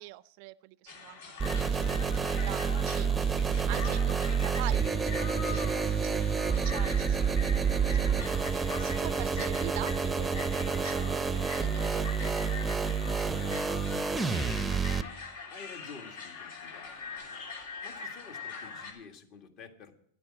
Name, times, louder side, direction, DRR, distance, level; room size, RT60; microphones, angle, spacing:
voice 1, 0.0-12.6, right 20 dB, 55° right, 19 dB, 0.4 m, -44 dB
sound 1, 0.9-18.9, left 5 dB, 75° left, 3.0 m, -43 dB
sound 2, 1.4-15.0, right 6 dB, 10° right, 0.6 m, -29 dB
voice 2, 13.4-13.7 15.5-16.9 17.8-19.9, left 5 dB, 45° left, 6 dB, 1.7 m, -50 dB
10.0 x 8.7 x 7.3 m, 0.67 s
supercardioid pair, 130°, 0 cm